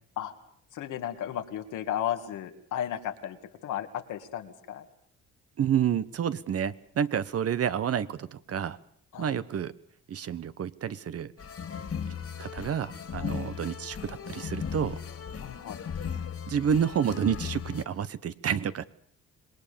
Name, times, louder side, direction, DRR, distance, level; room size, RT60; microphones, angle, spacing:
voice 1, 0.7-4.8 9.1-9.4 13.2-13.4 15.4-15.8, left 10 dB, 85° left, 6 dB, 2.3 m, -34 dB
voice 2, 5.6-8.8 9.2-9.7 10.1-11.3 12.4-15.0 16.5-18.8, right 8 dB, 50° right, 14 dB, 1.1 m, -29 dB
sound 1, 11.4-17.8, left 7 dB, 50° left, 2.6 m, -37 dB
26.5 x 20.0 x 7.0 m, 0.64 s
cardioid pair, 90°, 30 cm